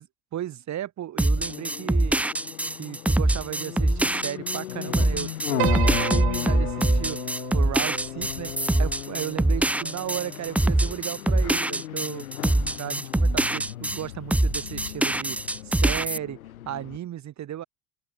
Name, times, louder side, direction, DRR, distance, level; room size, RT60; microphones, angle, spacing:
voice 1, 0.3-2.2 2.8-7.2 7.5-8.5 8.8-12.2 12.8-15.4 15.6-16.4 16.6-17.6, right 12 dB, 40° right, 2.5 m, -35 dB
sound 1, 1.2-14.0 14.3-16.2, right 1 dB, 5° right, 0.5 m, -24 dB
sound 2, 1.4-17.0, left 13 dB, 80° left, 3.0 m, -36 dB
Piano, 5.6-10.0, right 37 dB, 60° right, 1.8 m, -34 dB
open air
hypercardioid pair, 75°, 42 cm